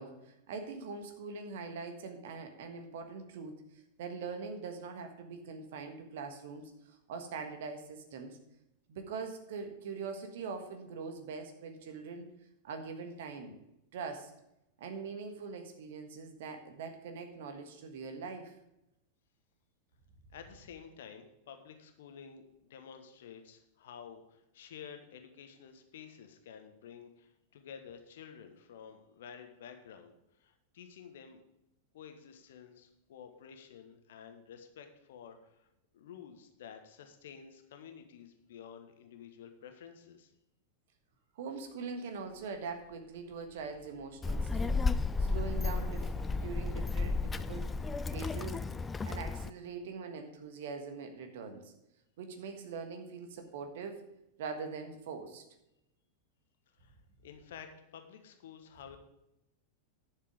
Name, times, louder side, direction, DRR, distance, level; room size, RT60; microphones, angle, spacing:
voice 1, 0.0-3.6 4.0-8.4 8.9-12.3 12.6-13.5 13.9-14.3 14.8-18.5 41.3-44.7 45.2-47.7 48.1-48.6 49.0-51.7 52.2-54.1 54.4-55.4, right 5 dB, 55° right, 6 dB, 1.5 m, -42 dB
voice 2, 20.3-31.4 31.9-35.7 35.9-40.3 56.8-57.0 57.2-59.0, left 7 dB, 60° left, 7 dB, 1.3 m, -51 dB
sound 1, 42.1-48.8, left 3 dB, 80° left, 2.0 m, -58 dB
Child speech kid speaking, 44.2-49.5, left 3 dB, 15° left, 0.4 m, -33 dB
11.0 x 6.7 x 5.0 m, 0.86 s
figure-of-eight pair, 90°, 0 cm